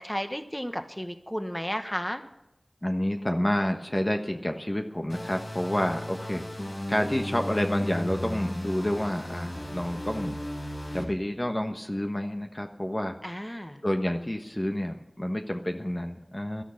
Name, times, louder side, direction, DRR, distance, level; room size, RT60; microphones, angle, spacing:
voice 1, 0.0-2.2 13.2-13.8, equal, 10° left, 7 dB, 1.4 m, -33 dB
voice 2, 2.8-6.4 6.9-10.4 10.9-13.1 13.8-16.6, left 1 dB, 25° left, 4 dB, 1.3 m, -29 dB
sound 1, 5.1-11.0, left 1 dB, 65° left, 6.4 m, -35 dB
17.0 x 13.0 x 5.8 m, 0.88 s
wide cardioid pair, 45°, 0 cm